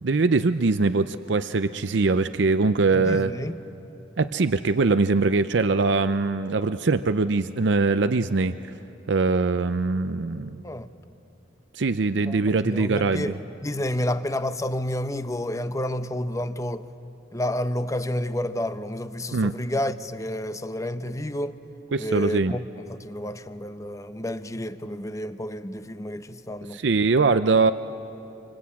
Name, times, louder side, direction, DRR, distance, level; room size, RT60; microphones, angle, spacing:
voice 1, 0.0-3.3 4.2-8.5 9.1-10.6 11.8-13.3 19.3-19.5 21.9-22.6 26.7-27.7, right 3 dB, 70° right, 0.6 m, -22 dB
voice 2, 2.9-3.6 10.6-10.9 12.3-13.4 13.6-16.8 17.3-21.6 22.0-26.8, left 1 dB, 20° left, 0.8 m, -30 dB
26.5 x 25.5 x 8.5 m
head